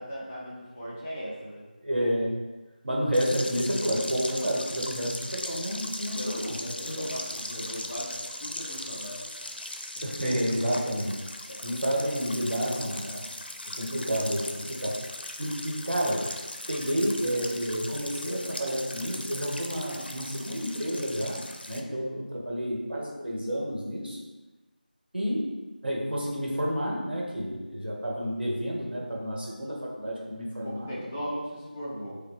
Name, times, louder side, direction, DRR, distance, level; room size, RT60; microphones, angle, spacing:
voice 1, 0.0-1.7 6.1-9.2 30.6-32.2, equal, 15° left, -9 dB, 0.5 m, -38 dB
voice 2, 1.8-2.3 2.8-6.5 6.8-7.1 10.0-11.2 11.6-13.2 13.7-15.0 15.4-16.2 16.7-21.4 21.7-24.2 25.1-25.5 25.8-31.0, equal, 90° right, -3 dB, 1.3 m, -30 dB
sound 1, 3.1-21.8, left 1 dB, 85° left, 0.5 m, -39 dB
5.3 x 2.2 x 3.0 m, 1.2 s
figure-of-eight pair, 175°, 5 cm